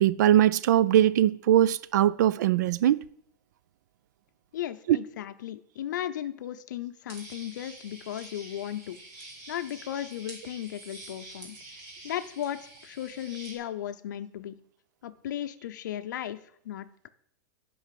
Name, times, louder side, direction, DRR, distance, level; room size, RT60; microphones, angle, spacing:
voice 1, 0.0-3.0 4.9-5.0, right 12 dB, 70° right, 0.4 m, -21 dB
voice 2, 4.5-9.0 9.5-11.6 12.0-14.6 15.0-17.1, left 11 dB, 75° left, 0.6 m, -36 dB
sound 1, 7.1-13.6, right 2 dB, 30° right, 2.4 m, -47 dB
9.8 x 5.6 x 7.6 m
supercardioid pair, 175°, 10 cm